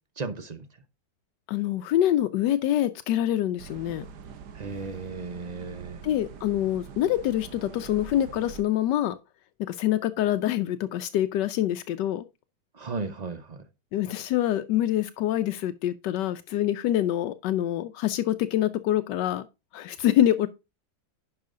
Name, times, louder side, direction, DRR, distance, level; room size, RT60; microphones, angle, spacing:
voice 1, 0.2-0.6 4.5-6.0 12.8-13.6, right 4 dB, 35° right, 0.6 m, -35 dB
voice 2, 1.5-4.0 6.0-9.1 9.7-12.2 13.9-19.5 19.7-20.5, left 12 dB, 85° left, 1.2 m, -25 dB
sound 1, 3.6-8.6, right 7 dB, 75° right, 1.6 m, -44 dB
10.5 x 5.6 x 3.7 m
omnidirectional pair, 1.8 m